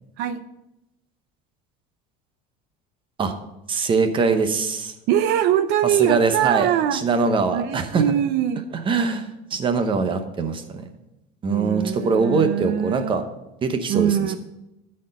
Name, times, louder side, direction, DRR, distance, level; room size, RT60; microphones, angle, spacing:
voice 1, 3.7-4.9 6.0-8.0 8.7-10.9 11.4-13.2 13.6-14.4, right 4 dB, 25° right, 8 dB, 0.8 m, -22 dB
voice 2, 5.1-7.0 7.5-8.7 11.5-13.2 13.9-14.4, right 10 dB, 60° right, 11 dB, 0.6 m, -22 dB
12.5 x 4.4 x 5.2 m, 0.90 s
cardioid pair, 155°, 20 cm